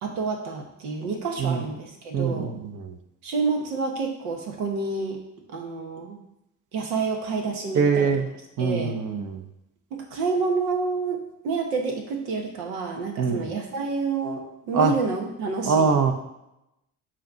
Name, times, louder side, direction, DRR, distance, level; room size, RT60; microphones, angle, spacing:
voice 1, 0.0-2.6 3.2-5.2 5.5-6.2 6.7-8.2 8.6-9.0 9.9-16.1, right 4 dB, 70° right, 2 dB, 1.3 m, -29 dB
voice 2, 2.1-2.9 7.8-8.2 8.6-9.4 13.2-13.4 14.7-14.9 15.7-16.1, right 5 dB, 40° right, 5 dB, 1.0 m, -23 dB
7.5 x 2.9 x 5.6 m, 0.87 s
figure-of-eight pair, 50°, 45 cm